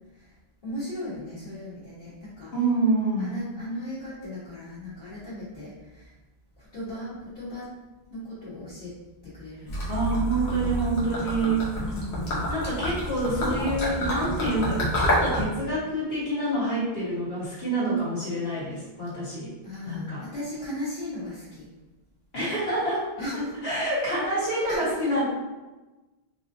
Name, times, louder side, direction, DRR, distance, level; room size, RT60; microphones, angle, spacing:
voice 1, 0.6-2.5 3.2-6.1 6.6-7.7 8.1-8.9 9.2-10.0 11.2-12.3 19.6-21.6 23.2-23.8 24.4-24.9, equal, 55° left, -15 dB, 1.7 m, -36 dB
voice 2, 2.5-3.3 9.9-11.6 12.5-19.5 19.8-20.3 22.3-23.1 23.6-25.2, right 1 dB, 70° left, -8 dB, 1.8 m, -27 dB
Gurgling / Liquid, 9.7-15.5, equal, 85° left, 1.3 m, -28 dB
4.7 x 2.6 x 2.7 m, 1.1 s
omnidirectional pair, 1.1 m